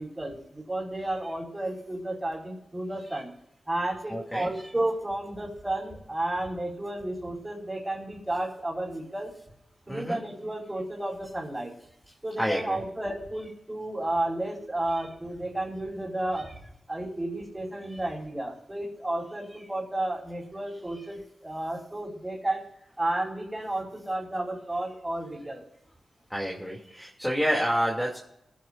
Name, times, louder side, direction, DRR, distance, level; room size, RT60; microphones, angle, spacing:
voice 1, 0.0-3.3 3.6-9.3 9.9-11.7 12.2-16.5 16.9-22.6 23.0-25.6, right 1 dB, 15° right, -8 dB, 5.1 m, -32 dB
voice 2, 4.1-4.5 9.9-10.2 12.4-12.8 14.9-15.0 17.9-18.0 26.3-28.2, equal, 5° left, -2 dB, 2.9 m, -29 dB
26.5 x 10.5 x 2.7 m, 0.81 s
cardioid pair, 70°, 0 cm